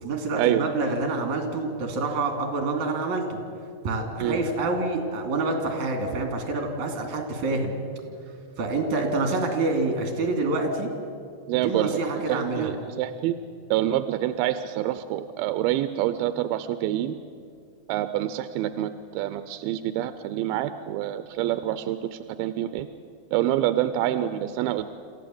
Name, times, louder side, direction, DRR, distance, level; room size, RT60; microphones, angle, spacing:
voice 1, 0.0-3.4 3.8-7.8 8.6-10.9 11.6-12.7, right 3 dB, 55° right, 3 dB, 3.9 m, -27 dB
voice 2, 11.5-12.0 12.3-13.4 13.7-17.2 17.9-22.9 23.3-24.9, right 13 dB, 85° right, 11 dB, 2.5 m, -26 dB
27.0 x 15.0 x 7.8 m, 2.4 s
omnidirectional pair, 4.3 m